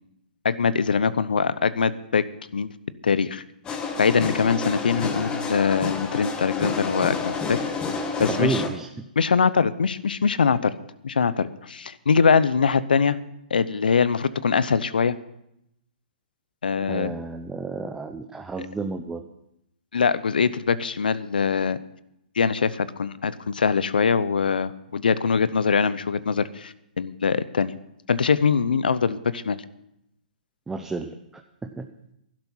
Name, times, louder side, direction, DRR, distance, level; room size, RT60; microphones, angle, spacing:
voice 1, 0.4-2.2 2.5-2.7 3.0-3.4 4.0-7.6 8.2-8.6 9.2-10.7 11.0-13.2 13.5-15.1 16.6-17.1 18.6-18.7 19.9-21.8 22.4-27.7 28.1-29.6, left 5 dB, 80° left, 17 dB, 0.7 m, -22 dB
sound 1, 3.6-8.7, left 4 dB, 20° left, 1.5 m, -29 dB
voice 2, 8.3-8.9 16.8-19.2 30.7-31.9, right 3 dB, 10° right, 5 dB, 0.7 m, -31 dB
12.0 x 11.5 x 5.6 m, 0.80 s
hypercardioid pair, 130°, 5 cm